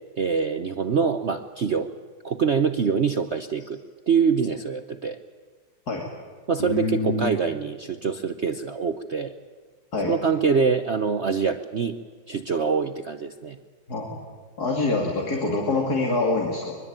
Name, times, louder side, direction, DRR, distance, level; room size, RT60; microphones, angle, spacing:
voice 1, 0.2-1.9 2.2-3.8 4.1-5.2 6.5-9.3 10.0-12.0 12.3-13.6, right 6 dB, 50° right, 8 dB, 0.8 m, -24 dB
voice 2, 6.6-7.3 9.9-10.2 13.9-14.2 14.6-16.7, left 3 dB, 50° left, 0 dB, 3.4 m, -25 dB
23.5 x 23.0 x 8.9 m, 1.5 s
omnidirectional pair, 2.2 m